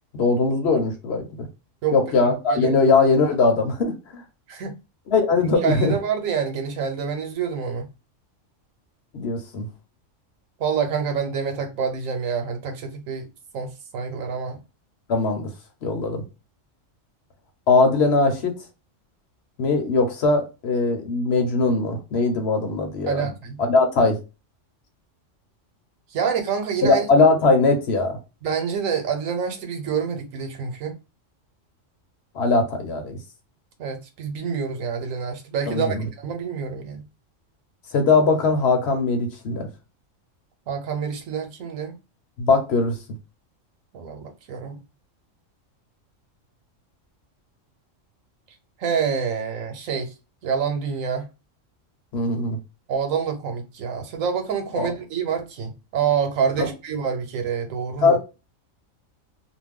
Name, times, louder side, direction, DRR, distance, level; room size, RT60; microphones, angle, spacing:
voice 1, 0.1-1.5 1.9-4.2 5.1-5.9 9.1-9.7 15.1-15.5 15.8-16.2 17.7-18.5 19.6-23.3 23.7-24.2 26.8-28.2 32.3-33.2 35.7-36.1 37.9-39.7 42.4-42.9 52.1-52.6 54.8-54.9 56.6-56.7 58.0-58.2, left 3 dB, 55° left, 1.0 m, -20 dB
voice 2, 2.2-2.8 4.5-4.7 5.6-7.9 10.6-13.3 13.5-14.6 23.1-23.6 26.1-27.0 28.4-31.0 33.8-37.0 40.7-41.9 43.9-44.8 48.8-50.1 50.4-51.3 52.9-58.2, right 6 dB, 90° right, 1.1 m, -27 dB
2.6 x 2.2 x 3.5 m
omnidirectional pair, 1.3 m